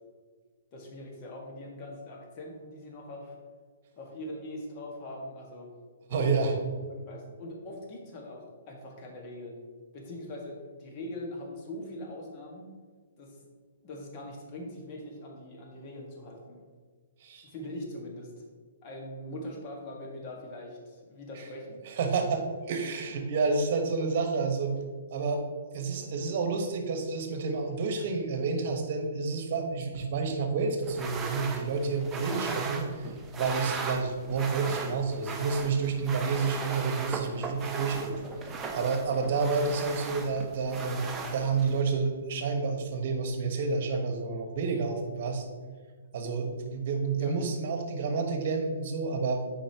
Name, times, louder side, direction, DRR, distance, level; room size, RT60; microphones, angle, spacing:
voice 1, 0.7-3.4 4.0-5.7 6.1-6.6 6.9-9.6 9.9-12.7 13.2-13.4 13.8-16.6 17.4-18.4 18.8-21.8 47.2-47.3, left 1 dB, 35° left, 0 dB, 1.6 m, -42 dB
voice 2, 6.1-6.5 17.2-17.5 21.8-24.8 25.1-25.4 25.7-38.2 38.7-45.4 46.1-49.6, right 4 dB, 50° right, 4 dB, 1.2 m, -29 dB
sound 1, 30.8-41.8, right 4 dB, 15° right, 0.6 m, -37 dB
8.5 x 5.1 x 2.9 m, 1.6 s
hypercardioid pair, 130°, 0 cm